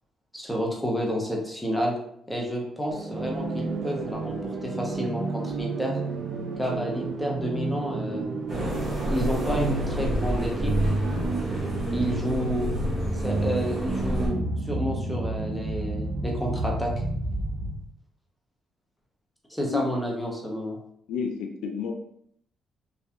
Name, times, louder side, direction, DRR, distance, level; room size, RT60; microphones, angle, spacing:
voice 1, 0.3-1.9 2.3-6.0 6.6-8.2 9.1-10.7 11.9-12.7 13.1-16.9 19.5-20.8, equal, ahead, -2 dB, 0.7 m, -30 dB
sound 1, 2.9-17.9, right 2 dB, 60° right, 0.4 m, -30 dB
sound 2, 8.5-14.3, equal, 35° right, 1.4 m, -30 dB
voice 2, 21.1-21.9, left 6 dB, 90° left, 2 dB, 0.3 m, -30 dB
2.6 x 2.2 x 2.2 m, 0.68 s
cardioid pair, 90°, 0 cm